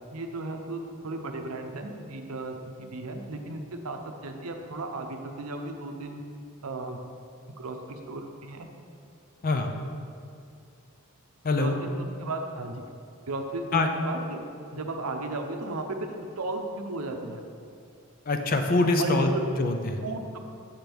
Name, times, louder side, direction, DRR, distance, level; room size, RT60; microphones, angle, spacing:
voice 1, 0.1-6.2 6.6-7.0 7.6-8.7 11.5-12.8 13.3-14.4 14.7-17.4 18.9-19.4 20.0-20.4, right 2 dB, 80° right, 4 dB, 0.6 m, -35 dB
voice 2, 18.3-19.3 19.6-20.0, left 2 dB, 40° left, 5 dB, 0.5 m, -24 dB
7.3 x 6.0 x 3.5 m, 2.4 s
head